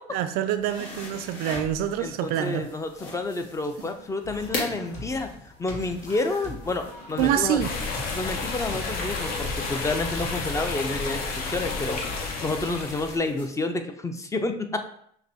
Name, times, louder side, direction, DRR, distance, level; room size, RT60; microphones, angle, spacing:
voice 1, 0.1-2.7 7.2-7.7, right 10 dB, 70° right, 11 dB, 0.4 m, -26 dB
sound 1, 0.5-13.5, left 3 dB, 85° left, 1.5 m, -42 dB
voice 2, 2.0-5.3 5.6-7.6 8.1-12.0 12.4-14.9, left 2 dB, 20° left, 7 dB, 0.5 m, -29 dB
sound 2, 4.2-11.0, left 1 dB, 45° left, 1.5 m, -41 dB
sound 3, 7.6-13.2, left 4 dB, 65° left, 1.0 m, -31 dB
5.8 x 2.7 x 2.7 m, 0.67 s
supercardioid pair, 90°, 17 cm